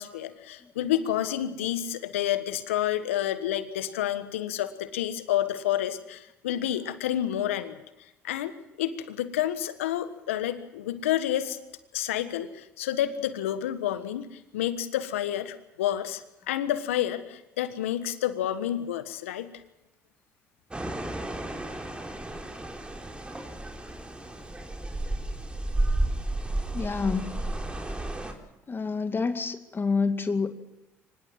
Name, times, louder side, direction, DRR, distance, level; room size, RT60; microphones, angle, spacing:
voice 1, 0.0-7.8 8.2-11.6 11.9-19.5, left 11 dB, 85° left, 12 dB, 1.4 m, -29 dB
sound 1, 20.7-28.3, right 1 dB, 15° right, 4.1 m, -32 dB
voice 2, 26.7-27.4 28.7-30.5, left 4 dB, 30° left, 8 dB, 2.2 m, -28 dB
24.0 x 20.0 x 7.6 m, 0.93 s
hypercardioid pair, 55°, 7 cm